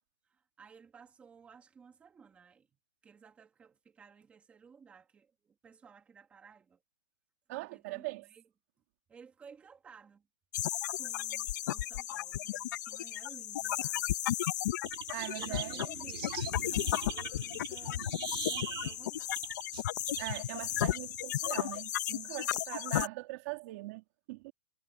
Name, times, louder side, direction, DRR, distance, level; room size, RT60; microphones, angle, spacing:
voice 1, 0.2-2.7 3.0-6.8 7.5-8.4 9.1-10.3 10.9-14.0 15.4-18.1 18.5-19.3, right 6 dB, 10° right, 2.3 m, -56 dB
voice 2, 7.5-8.3 15.1-15.9 20.2-24.5, right 22 dB, 35° right, 2.8 m, -41 dB
sound 1, 10.5-23.1, left 13 dB, 45° left, 1.0 m, -34 dB
sound 2, 14.8-21.8, right 10 dB, 70° right, 2.9 m, -43 dB
hypercardioid pair, 170°, 13 cm